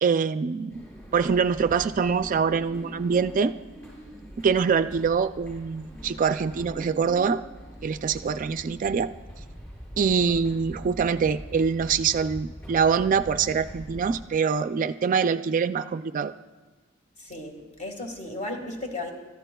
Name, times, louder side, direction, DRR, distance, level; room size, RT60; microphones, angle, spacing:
voice 1, 0.0-0.8 1.1-3.5 4.4-7.4 7.8-9.1 10.0-16.3, right 6 dB, 40° right, 10 dB, 0.3 m, -24 dB
sound 1, 0.7-14.2, equal, 15° left, 5.5 m, -43 dB
voice 2, 17.2-19.1, left 2 dB, 35° left, 2 dB, 1.8 m, -35 dB
29.5 x 14.0 x 2.3 m, 1.3 s
head